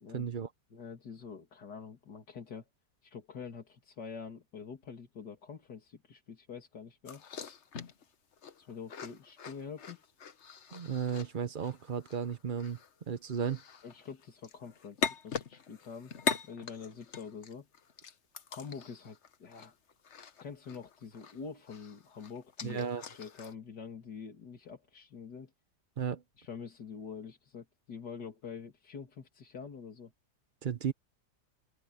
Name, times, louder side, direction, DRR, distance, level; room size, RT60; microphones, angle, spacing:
voice 1, 0.1-0.5 10.7-12.8 13.1-13.6 22.6-23.0 26.0-26.2 30.6-30.9, right 7 dB, 45° right, 0.7 m, -34 dB
voice 2, 0.7-2.6 3.0-7.2 8.4-10.0 13.8-16.1 16.4-17.7 18.5-19.7 20.4-25.5 26.4-30.1, left 6 dB, 85° left, 2.8 m, -46 dB
sound 1, 7.1-21.4 21.7-23.5, left 6 dB, 45° left, 1.3 m, -41 dB
open air
omnidirectional pair, 1.8 m